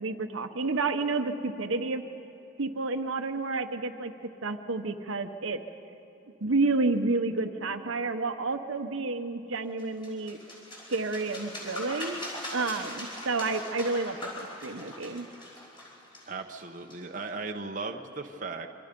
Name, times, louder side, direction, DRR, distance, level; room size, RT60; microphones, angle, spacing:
voice 1, 0.0-2.0 2.6-4.1 4.4-5.6 6.4-10.4 10.9-12.2 12.5-15.3, right 3 dB, 70° right, 7 dB, 1.0 m, -30 dB
sound 1, 9.8-17.3, left 1 dB, 25° left, 5.2 m, -41 dB
voice 2, 16.3-18.7, right 3 dB, 40° right, 3 dB, 0.9 m, -37 dB
27.0 x 25.0 x 5.3 m, 2.9 s
head